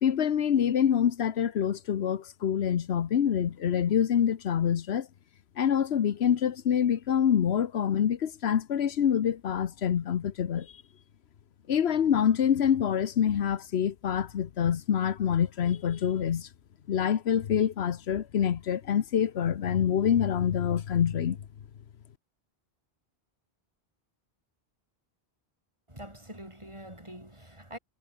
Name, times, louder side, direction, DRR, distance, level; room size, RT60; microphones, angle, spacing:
voice 1, 0.0-5.1 5.6-10.7 11.7-16.5 16.9-21.4, left 8 dB, 85° left, 1.1 m, -26 dB
voice 2, 25.9-27.8, right 1 dB, 30° right, 6.2 m, -45 dB
omnidirectional pair, 1.1 m